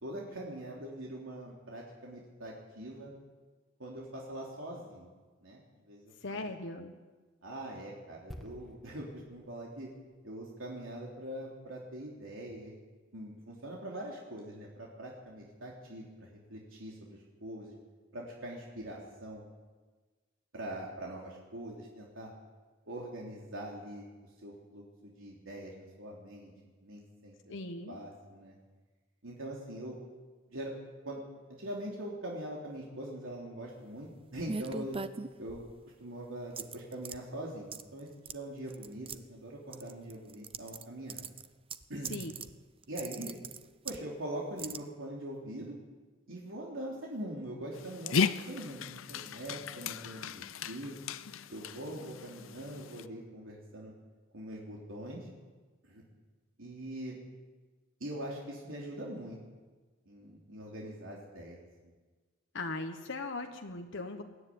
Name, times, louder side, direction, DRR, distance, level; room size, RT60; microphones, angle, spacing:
voice 1, 0.0-3.1 3.8-5.1 5.4-5.6 5.9-6.4 7.4-9.9 10.2-12.7 13.1-17.7 18.1-19.4 20.5-22.3 22.9-24.0 24.4-26.5 26.8-27.5 27.9-28.5 29.2-30.0 30.5-30.7 31.0-31.2 31.6-35.0 35.4-35.6 36.0-41.2 41.9-42.2 42.9-43.3 43.8-45.8 46.3-51.0 51.5-53.9 54.3-55.3 55.9-56.0 56.6-57.2 58.0-59.4 60.1-61.6 61.8-61.9, right 1 dB, 80° right, -3 dB, 3.5 m, -43 dB
voice 2, 6.2-6.9 27.5-28.0 42.1-42.3 62.5-64.2, left 2 dB, 65° left, 4 dB, 1.4 m, -39 dB
sound 1, 8.3-11.9 12.2-12.4, equal, ahead, 2.0 m, -53 dB
sound 2, 34.5-35.8 36.6-37.2 37.7-38.0 38.3-38.4 38.7-39.2 39.7-40.8 41.1-42.5 42.8-44.0 44.6-44.8, right 4 dB, 30° right, 0.8 m, -40 dB
Dog, 47.7-53.1, left 6 dB, 90° left, 0.7 m, -36 dB
21.0 x 13.5 x 9.5 m, 1.3 s
head